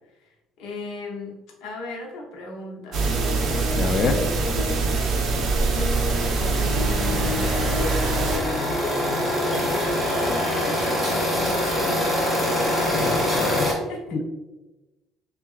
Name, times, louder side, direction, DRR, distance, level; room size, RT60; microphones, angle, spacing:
voice 1, 0.1-3.1 5.7-7.8 10.2-12.1 13.4-14.2, left 3 dB, 75° left, -1 dB, 0.8 m, -36 dB
sound 1, 2.9-10.3, left 3 dB, 50° left, 1.2 m, -31 dB
sound 2, 2.9-8.4, right 4 dB, 50° right, 0.7 m, -24 dB
voice 2, 3.7-4.2 12.9-13.7 14.1-14.2, left 4 dB, 35° left, 7 dB, 0.4 m, -25 dB
sound 3, 5.9-13.7, left 1 dB, 5° right, 1.1 m, -25 dB
5.5 x 2.5 x 2.4 m, 1.1 s
cardioid pair, 145°, 0 cm